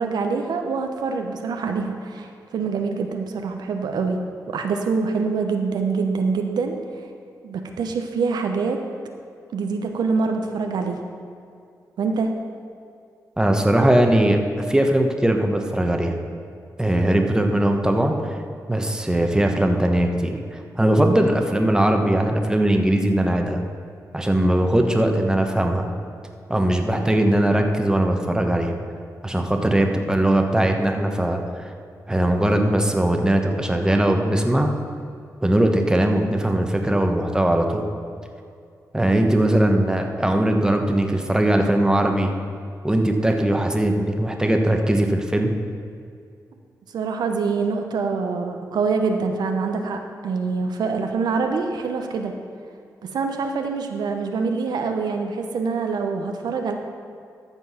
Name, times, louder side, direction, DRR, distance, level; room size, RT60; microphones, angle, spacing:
voice 1, 0.0-4.2 4.5-6.8 7.4-8.8 9.5-11.0 12.0-12.3 46.9-52.3 53.1-56.7, right 4 dB, 85° right, 4 dB, 0.7 m, -25 dB
voice 2, 13.4-16.2 16.8-18.1 18.7-23.6 24.1-25.9 26.5-28.7 29.2-31.7 32.1-34.7 35.4-37.9 38.9-42.3 42.8-45.5, right 1 dB, 10° right, 4 dB, 1.1 m, -20 dB
13.5 x 4.6 x 5.6 m, 2.4 s
cardioid pair, 60°, 7 cm